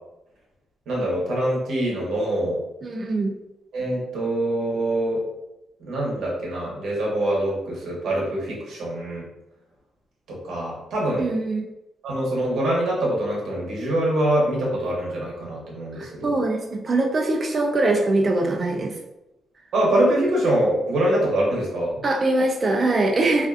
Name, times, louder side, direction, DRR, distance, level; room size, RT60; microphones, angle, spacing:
voice 1, 0.9-2.6 3.7-5.2 5.9-9.3 10.3-11.3 12.0-16.4 19.7-22.0, right 1 dB, 80° right, -4 dB, 0.8 m, -24 dB
voice 2, 2.8-3.3 11.2-11.6 16.0-19.0 22.0-23.5, right 2 dB, 35° right, 1 dB, 0.3 m, -22 dB
2.5 x 2.3 x 2.4 m, 0.92 s
cardioid pair, 100°, 0 cm